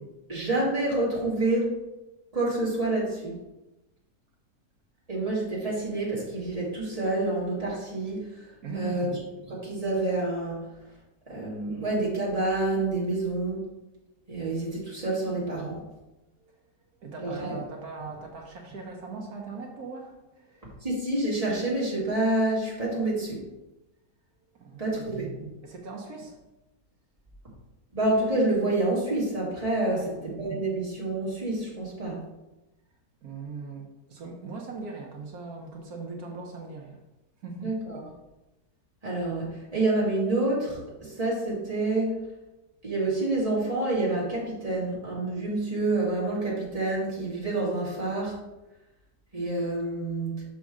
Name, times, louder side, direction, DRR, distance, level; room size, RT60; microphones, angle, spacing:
voice 1, 0.3-1.7 2.3-3.4 5.1-8.4 8.7-9.2 9.5-10.7 11.3-13.6 14.3-15.8 17.2-17.6 20.8-23.4 24.8-25.3 27.9-32.2 37.6-38.0 39.0-42.2 42.8-48.4 49.3-50.4, right 2 dB, 20° right, -7 dB, 2.1 m, -28 dB
voice 2, 8.6-9.1 16.4-16.5 17.0-20.7 24.5-26.4 29.9-30.1 33.2-37.0 37.4-37.7, right 4 dB, 65° right, 1 dB, 1.3 m, -40 dB
6.2 x 6.0 x 3.7 m, 1.0 s
omnidirectional pair, 1.9 m